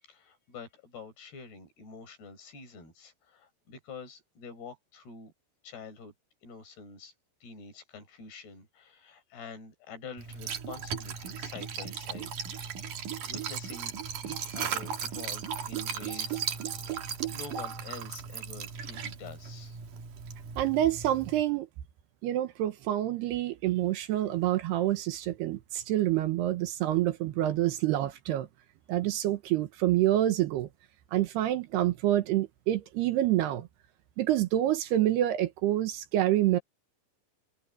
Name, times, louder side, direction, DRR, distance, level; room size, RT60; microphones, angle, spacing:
voice 1, 0.0-5.3 5.6-6.1 6.4-7.1 7.4-12.7 13.2-14.0 14.2-16.7 17.3-19.8, left 5 dB, 60° left, 8.0 m, -47 dB
Liquid, 10.2-21.4, right 7 dB, 55° right, 2.9 m, -36 dB
voice 2, 20.6-21.7 22.2-28.5 28.9-30.7 31.1-33.7 34.2-36.6, right 13 dB, 75° right, 2.9 m, -27 dB
omnidirectional pair, 5.3 m